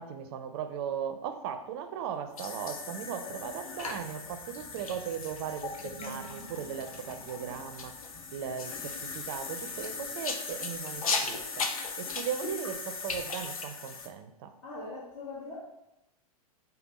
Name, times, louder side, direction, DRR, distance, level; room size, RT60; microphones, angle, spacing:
voice 1, 0.0-8.0 8.3-11.7 12.0-14.5, right 8 dB, 40° right, 8 dB, 0.5 m, -37 dB
sound 1, 2.1-10.2, left 2 dB, 5° left, 0.7 m, -58 dB
sound 2, 2.3-14.1, left 4 dB, 65° left, 0.6 m, -37 dB
sound 3, 6.0-8.6, right 4 dB, 30° left, 1.2 m, -51 dB
voice 2, 14.6-15.6, left 3 dB, 50° left, -8 dB, 1.3 m, -41 dB
5.1 x 2.2 x 4.1 m, 0.90 s
figure-of-eight pair, 100°, 19 cm